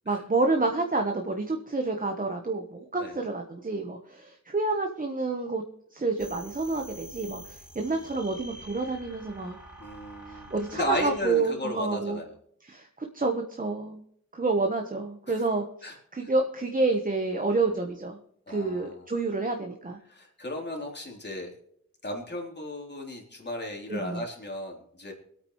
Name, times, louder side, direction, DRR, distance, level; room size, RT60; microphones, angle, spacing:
voice 1, 0.1-5.6 5.9-9.6 10.3-12.2 12.6-14.0 14.3-18.2 18.5-20.0 23.9-24.2, right 3 dB, 30° right, 3 dB, 1.2 m, -29 dB
sound 1, 6.2-11.2, right 1 dB, 5° right, 2.0 m, -47 dB
voice 2, 9.8-12.3 15.3-15.5 15.8-16.0 16.2-16.3 18.5-19.0 20.0-21.5 22.0-25.1, left 1 dB, 35° left, 0 dB, 3.5 m, -35 dB
24.0 x 8.7 x 3.2 m, 0.70 s
wide cardioid pair, 115°, 29 cm